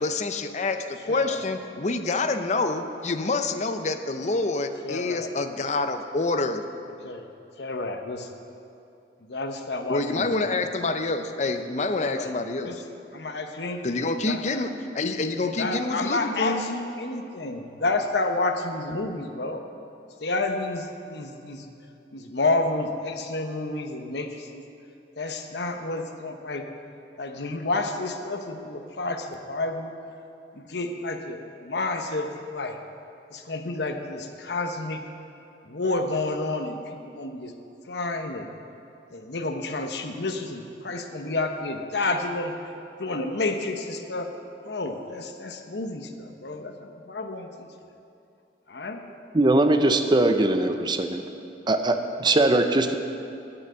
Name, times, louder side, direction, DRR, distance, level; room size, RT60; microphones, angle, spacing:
voice 1, 0.0-6.6 9.9-12.7 13.8-16.6, left 3 dB, 40° left, 8 dB, 0.6 m, -27 dB
voice 2, 1.1-1.5 4.8-5.3 7.0-7.3 7.6-8.3 9.2-10.6 12.0-12.3 12.6-12.8 13.1-13.8 14.2-14.6 15.4-19.6 20.2-21.7 22.1-24.6 25.2-26.6 27.2-29.9 30.5-32.8 33.3-35.0 35.6-37.5 37.9-38.5 39.1-42.5 43.0-44.3 44.6-47.7 48.7-49.0, left 2 dB, 70° left, 5 dB, 0.9 m, -30 dB
voice 3, 49.3-51.2 51.7-52.9, right 2 dB, 25° right, 7 dB, 0.5 m, -21 dB
9.2 x 8.7 x 7.6 m, 2.7 s
head